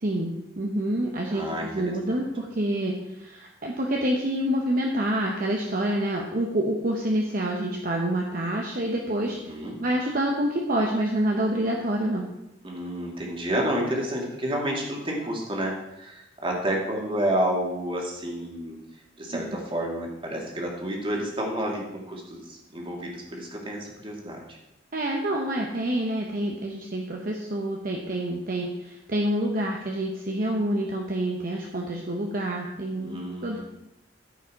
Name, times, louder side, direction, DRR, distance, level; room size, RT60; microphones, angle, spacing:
voice 1, 0.0-9.4 9.8-12.3 19.3-19.6 24.9-33.6, right 1 dB, 50° right, 0 dB, 1.0 m, -27 dB
voice 2, 1.3-2.2 9.2-9.8 12.6-18.8 19.2-24.6 33.0-33.6, right 1 dB, 30° right, -1 dB, 2.1 m, -30 dB
13.5 x 5.6 x 4.7 m, 0.89 s
head